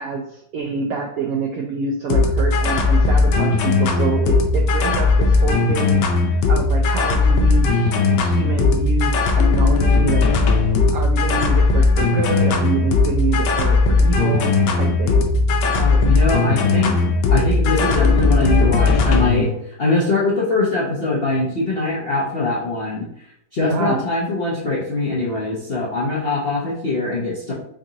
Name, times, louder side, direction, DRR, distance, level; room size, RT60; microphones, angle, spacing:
voice 1, 0.0-7.9 8.2-10.3 10.9-15.2 23.6-24.0, right 5 dB, 80° right, 0 dB, 0.8 m, -27 dB
sound 1, 2.1-19.4, left 3 dB, 75° left, 1.3 m, -17 dB
voice 2, 15.7-17.0 17.3-19.5 19.8-23.1 23.5-27.5, left 2 dB, 60° left, -5 dB, 0.6 m, -22 dB
3.7 x 3.7 x 2.8 m, 0.73 s
omnidirectional pair, 2.0 m